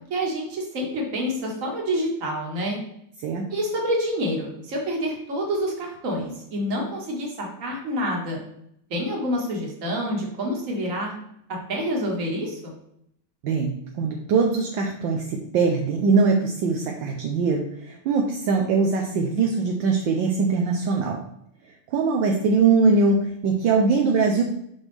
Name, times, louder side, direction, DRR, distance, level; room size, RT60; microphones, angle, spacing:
voice 1, 0.1-2.8 3.5-8.4 8.9-11.1 11.7-12.7, equal, 40° right, 0 dB, 1.7 m, -27 dB
voice 2, 13.4-21.2 21.9-24.4, right 4 dB, 70° right, 2 dB, 1.3 m, -22 dB
6.2 x 5.7 x 3.3 m, 0.74 s
omnidirectional pair, 2.4 m